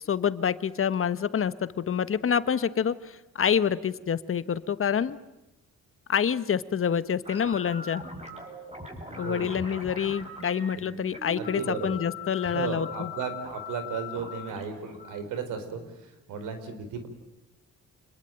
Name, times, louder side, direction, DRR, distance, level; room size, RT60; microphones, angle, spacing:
voice 1, 0.1-5.2 6.1-8.0 9.2-13.1, left 7 dB, 45° left, 14 dB, 1.3 m, -27 dB
sound 1, 7.2-16.2, left 3 dB, 20° right, 7.7 m, -41 dB
voice 2, 11.4-11.9 12.4-17.1, right 6 dB, 90° right, 9 dB, 4.5 m, -35 dB
27.5 x 21.0 x 9.2 m, 0.94 s
cardioid pair, 90°, 30 cm